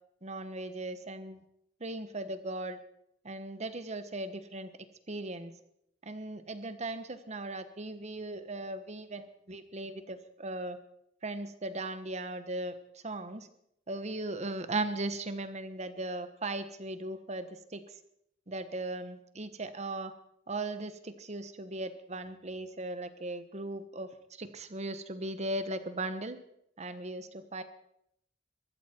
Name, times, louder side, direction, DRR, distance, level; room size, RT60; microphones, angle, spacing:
voice 1, 0.2-1.4 1.8-2.8 3.2-4.7 5.1-5.5 6.0-10.8 11.2-13.5 13.9-17.8 18.5-20.1 20.5-26.4 26.8-27.6, right 2 dB, 40° right, 11 dB, 1.2 m, -38 dB
22.0 x 13.5 x 4.5 m, 0.75 s
head